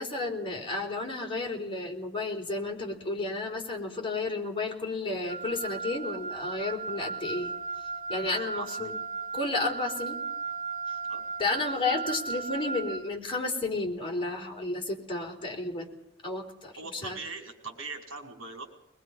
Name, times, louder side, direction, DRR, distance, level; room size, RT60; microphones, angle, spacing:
voice 1, 0.0-7.5 8.1-9.0 9.3-10.2 11.4-15.9 16.2-17.2, left 3 dB, 25° left, 0 dB, 4.0 m, -32 dB
Wind instrument woodwind instrument, 5.3-13.1, right 4 dB, 40° right, 2.2 m, -36 dB
voice 2, 8.3-8.9 11.1-11.2 16.7-18.6, right 3 dB, 70° right, 3 dB, 5.2 m, -41 dB
22.5 x 22.0 x 5.6 m, 0.79 s
head